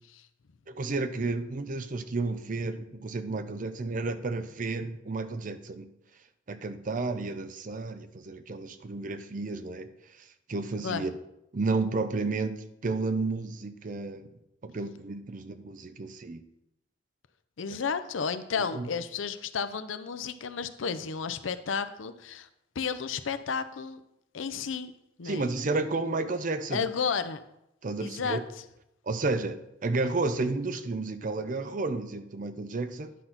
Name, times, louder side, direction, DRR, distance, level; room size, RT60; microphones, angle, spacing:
voice 1, 0.7-5.9 6.5-9.9 10.2-11.1 11.5-14.3 14.6-16.4 18.7-18.9 25.2-26.8 27.8-28.4 29.1-33.1, right 3 dB, 45° right, 0.5 m, -32 dB
voice 2, 17.6-22.5 22.8-24.0 24.3-24.9 25.2-25.5 26.7-27.4 28.0-28.4, left 6 dB, 85° left, 0.6 m, -32 dB
10.0 x 4.0 x 5.8 m
head